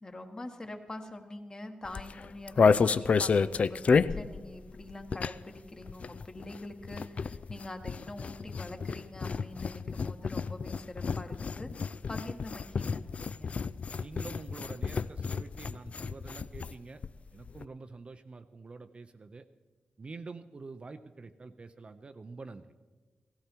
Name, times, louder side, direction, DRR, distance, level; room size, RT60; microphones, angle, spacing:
voice 1, 0.0-13.5, left 1 dB, 25° left, 5 dB, 1.3 m, -45 dB
sound 1, 1.8-5.6 5.8-16.7 17.0-17.1 17.3-17.6, left 5 dB, 50° left, 0.3 m, -30 dB
voice 2, 14.0-17.0 17.3-19.4 20.0-22.7, right 3 dB, 40° right, 9 dB, 0.6 m, -46 dB
17.0 x 15.0 x 4.5 m, 1.3 s
wide cardioid pair, 105°, 3 cm